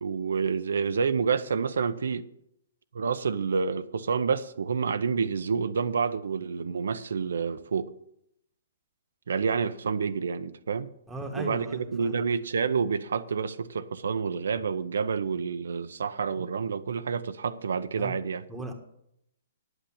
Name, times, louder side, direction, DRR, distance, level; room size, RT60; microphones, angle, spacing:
voice 1, 0.0-2.3 2.9-7.9 9.3-10.9 11.4-18.4, right 5 dB, 85° right, 0.7 m, -28 dB
voice 2, 11.1-12.2 18.0-18.1 18.5-18.7, right 2 dB, 5° right, 1.5 m, -37 dB
9.9 x 8.1 x 8.5 m
hypercardioid pair, 165°, 0 cm